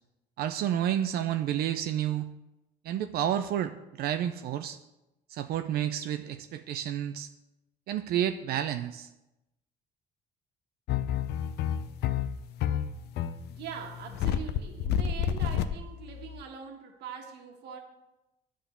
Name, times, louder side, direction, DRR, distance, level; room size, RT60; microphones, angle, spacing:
voice 1, 0.4-2.3 2.8-4.8 5.3-7.3 7.9-9.1, right 10 dB, 65° right, 9 dB, 0.4 m, -30 dB
sound 1, 10.9-16.4, left 9 dB, 75° left, 0.5 m, -29 dB
voice 2, 13.5-17.8, right 7 dB, 85° right, 2 dB, 1.3 m, -42 dB
9.2 x 3.7 x 6.9 m, 0.95 s
cardioid pair, 110°, 17 cm